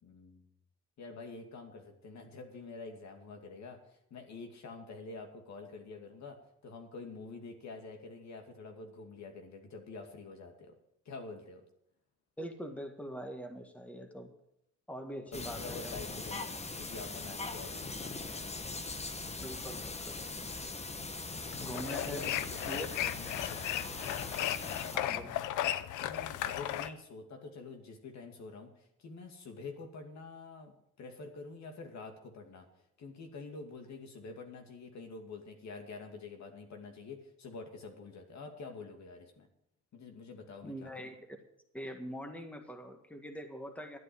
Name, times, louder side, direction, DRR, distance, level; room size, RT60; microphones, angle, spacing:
voice 1, 0.0-0.5 1.0-10.7 11.0-11.6 15.3-18.5 21.4-21.7 22.0-24.0 26.0-32.7 33.0-39.5 39.9-40.9, left 3 dB, 65° left, 3 dB, 2.5 m, -47 dB
voice 2, 12.4-14.3 14.9-16.0 19.4-20.2 21.5-22.3 22.6-22.9 24.9-25.4 26.8-26.9 40.6-41.4 41.7-44.0, equal, 5° left, 5 dB, 1.8 m, -43 dB
sound 1, 15.3-25.0, left 3 dB, 20° left, 1.1 m, -41 dB
sound 2, 21.5-26.9, left 12 dB, 85° left, 0.7 m, -35 dB
12.0 x 9.0 x 7.1 m, 0.77 s
cardioid pair, 90°, 30 cm